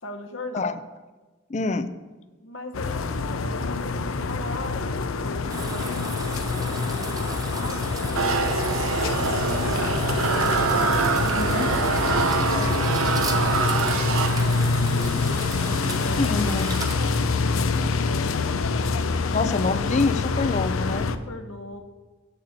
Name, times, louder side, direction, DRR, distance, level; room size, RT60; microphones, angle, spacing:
voice 1, 0.0-0.7 2.3-7.9 8.8-10.6 15.2-16.7 17.1-18.6 21.1-21.8, left 1 dB, 65° left, 5 dB, 1.1 m, -40 dB
voice 2, 1.5-1.9 11.2-11.7 16.2-16.8 19.3-21.1, left 3 dB, 35° left, 12 dB, 0.5 m, -26 dB
sound 1, 2.7-21.2, left 4 dB, 80° left, 0.6 m, -26 dB
sound 2, 5.5-18.1, right 3 dB, 20° right, 0.9 m, -36 dB
sound 3, 8.2-14.8, right 4 dB, 90° right, 0.8 m, -25 dB
8.3 x 6.8 x 8.1 m, 1.3 s
head